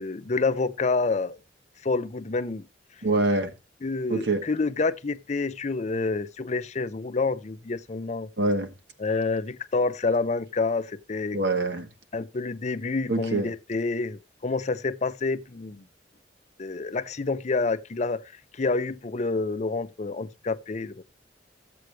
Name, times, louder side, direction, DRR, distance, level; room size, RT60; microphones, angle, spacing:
voice 1, 0.0-1.4 1.8-2.6 3.8-8.3 9.0-11.4 12.1-15.8 16.6-18.2 18.5-21.0, left 3 dB, 40° left, 0.5 m, -28 dB
voice 2, 3.0-3.5 4.1-4.4 8.4-8.7 11.3-11.9 13.1-13.5, right 2 dB, 70° right, 1.9 m, -24 dB
14.0 x 7.7 x 3.2 m
head